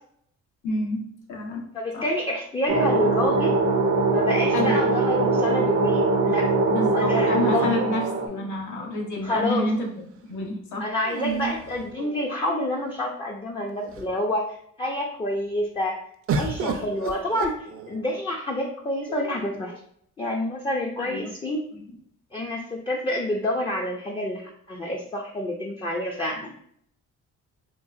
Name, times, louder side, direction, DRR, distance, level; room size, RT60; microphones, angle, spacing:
voice 1, 0.6-1.0 1.3-1.6 1.9-2.0 4.5-4.8 6.7-10.9 21.0-21.3, left 1 dB, 75° left, 0 dB, 0.9 m, -29 dB
voice 2, 1.7-3.5 4.1-6.5 6.9-7.9 9.2-9.7 10.8-16.0 16.3-19.7 20.2-21.6 22.3-26.5, left 1 dB, 15° left, 0 dB, 0.4 m, -28 dB
sound 1, 2.7-8.3, right 3 dB, 80° right, 0.7 m, -22 dB
sound 2, 8.0-9.1 11.0-12.6 13.3-13.4 13.7-14.3 16.3-18.2 19.1-19.8, right 5 dB, 50° right, 0.5 m, -33 dB
3.8 x 2.3 x 2.4 m, 0.67 s
cardioid pair, 90°, 30 cm